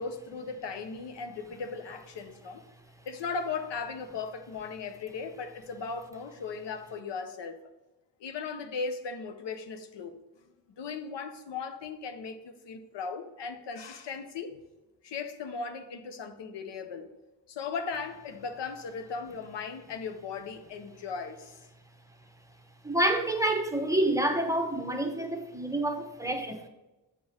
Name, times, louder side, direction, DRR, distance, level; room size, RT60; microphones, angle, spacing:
voice 1, 0.0-2.6 3.0-7.6 8.2-10.2 10.8-14.6 15.0-17.1 17.5-21.7, left 5 dB, 85° left, 0.8 m, -37 dB
voice 2, 22.8-26.7, right 1 dB, 10° right, 0.9 m, -28 dB
8.0 x 4.8 x 4.2 m
cardioid pair, 90°, 41 cm